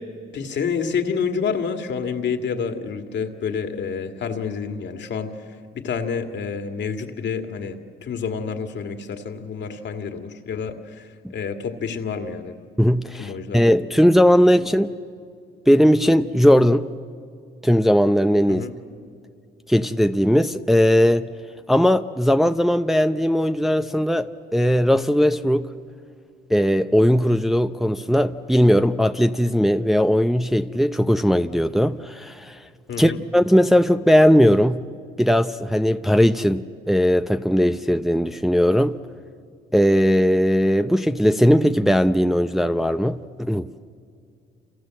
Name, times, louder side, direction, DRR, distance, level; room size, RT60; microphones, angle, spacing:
voice 1, 0.3-12.6 13.2-13.6 14.5-14.8 18.5-18.7 32.9-33.2, left 6 dB, 65° left, 6 dB, 2.2 m, -28 dB
voice 2, 12.8-14.9 15.7-16.9 17.6-18.6 19.7-21.3 21.7-25.7 26.5-32.6 33.0-34.8 35.2-39.0 39.7-43.7, equal, ahead, 8 dB, 0.7 m, -18 dB
28.5 x 27.5 x 7.7 m, 2.3 s
cardioid pair, 90°, 20 cm